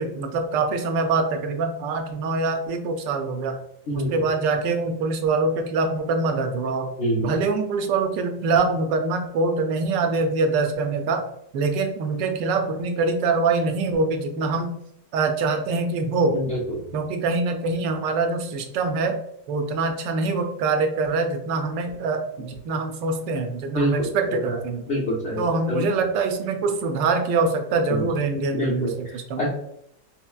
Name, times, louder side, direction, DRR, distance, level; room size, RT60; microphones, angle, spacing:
voice 1, 0.0-3.6 3.9-6.9 7.2-11.3 11.5-14.7 15.1-16.4 16.9-19.2 19.5-24.8 25.4-29.5, right 3 dB, 85° right, 5 dB, 1.2 m, -24 dB
voice 2, 3.9-4.2 7.0-7.3 16.3-16.8 23.8-24.6 24.9-25.8 27.9-28.1 28.5-29.0 29.4-29.5, equal, 70° left, -5 dB, 0.6 m, -26 dB
5.4 x 2.0 x 2.3 m, 0.76 s
omnidirectional pair, 1.9 m